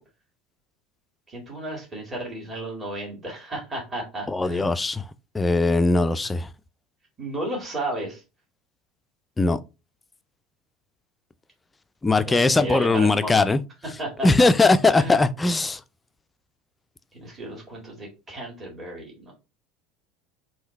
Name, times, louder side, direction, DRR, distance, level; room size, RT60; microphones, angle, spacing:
voice 1, 1.3-4.7 7.2-8.2 12.2-13.5 14.0-15.2 17.1-19.3, right 1 dB, 25° right, 1.8 m, -33 dB
voice 2, 4.3-5.0 5.3-6.5 9.4-9.6 12.0-13.6 14.2-15.8, left 3 dB, 15° left, 0.3 m, -20 dB
3.7 x 2.7 x 4.1 m
figure-of-eight pair, 70°, 0 cm